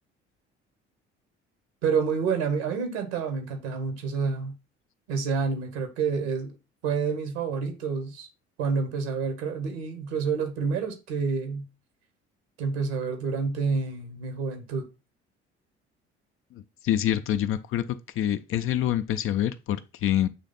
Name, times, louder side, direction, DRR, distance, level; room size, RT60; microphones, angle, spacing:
voice 1, 1.8-4.5 5.1-6.5 6.8-8.3 8.6-11.7 12.6-14.9, right 5 dB, 70° right, 1.3 m, -28 dB
voice 2, 16.8-17.9 18.2-20.3, left 11 dB, 40° left, 0.5 m, -26 dB
7.4 x 3.2 x 3.9 m
figure-of-eight pair, 50°, 34 cm